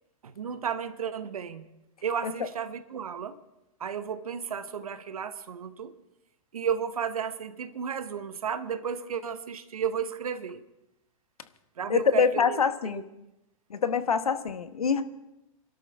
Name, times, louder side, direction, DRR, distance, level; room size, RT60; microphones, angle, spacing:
voice 1, 0.2-1.7 2.0-3.4 3.8-5.9 6.5-10.6 11.8-12.6 13.0-13.1, right 7 dB, 80° right, 1.1 m, -33 dB
voice 2, 11.9-13.0 13.7-15.0, left 6 dB, 85° left, 1.2 m, -25 dB
26.0 x 12.5 x 3.5 m
hypercardioid pair, 115°, 18 cm